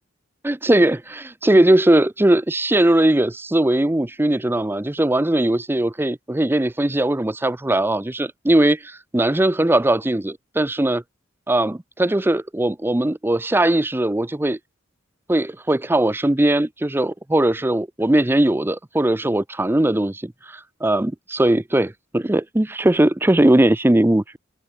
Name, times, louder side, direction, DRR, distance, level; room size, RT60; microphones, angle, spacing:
voice 1, 0.4-11.0 11.5-14.6 15.3-24.4, right 1 dB, 10° right, 0.5 m, -19 dB
head